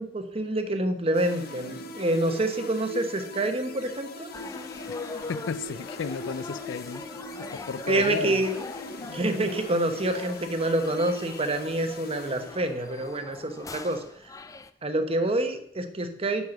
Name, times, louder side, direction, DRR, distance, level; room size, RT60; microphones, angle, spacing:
voice 1, 0.0-4.3 7.9-8.6 9.1-14.0 14.8-16.4, right 1 dB, 30° right, 0.9 m, -27 dB
sound 1, 1.1-13.0, left 2 dB, 55° left, 0.7 m, -41 dB
sound 2, 4.3-14.7, left 3 dB, 20° left, 0.3 m, -42 dB
voice 2, 5.3-7.0 7.4-8.4, left 5 dB, 85° left, 0.4 m, -33 dB
7.9 x 5.5 x 5.8 m
head